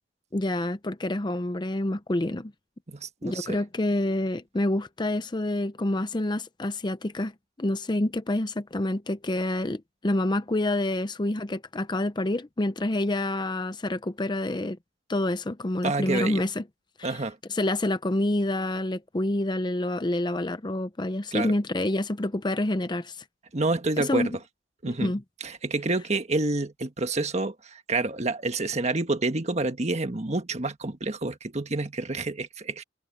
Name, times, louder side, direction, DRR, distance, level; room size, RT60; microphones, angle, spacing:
voice 1, 0.3-2.5 3.2-7.3 7.6-14.8 15.1-16.6 17.0-17.2 17.5-23.2 24.0-24.3 24.9-25.2, left 1 dB, 25° left, 0.6 m, -27 dB
voice 2, 2.9-3.6 15.8-16.4 17.0-17.4 21.3-21.5 23.5-24.3 24.8-25.1 25.4-32.8, right 2 dB, 35° right, 1.4 m, -28 dB
head